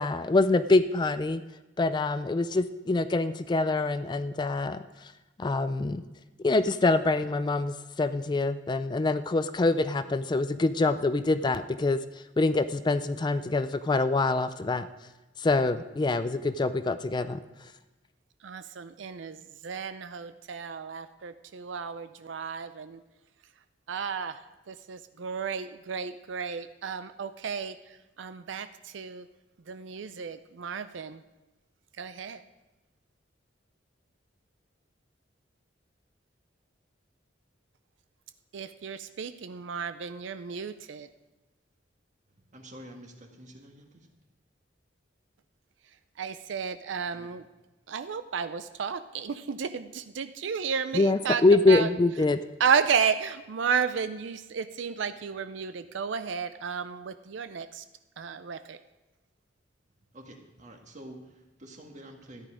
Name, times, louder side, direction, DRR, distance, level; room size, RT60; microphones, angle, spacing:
voice 1, 0.0-1.4 1.8-4.8 5.4-6.0 6.4-12.0 12.4-14.9 15.4-17.4 50.9-52.4, left 3 dB, 25° left, 12 dB, 0.4 m, -25 dB
voice 2, 18.4-19.4 19.6-23.0 23.9-24.4 24.7-27.7 28.2-28.7 28.9-29.2 29.7-31.2 32.0-32.4 38.5-41.1 46.2-47.4 47.9-51.4 51.7-51.9 52.6-57.8 58.2-58.8, right 6 dB, 80° right, 11 dB, 0.5 m, -32 dB
voice 3, 42.5-44.1 47.1-47.3 60.1-62.5, right 1 dB, 40° right, 3 dB, 1.7 m, -48 dB
13.5 x 9.9 x 5.0 m, 1.1 s
head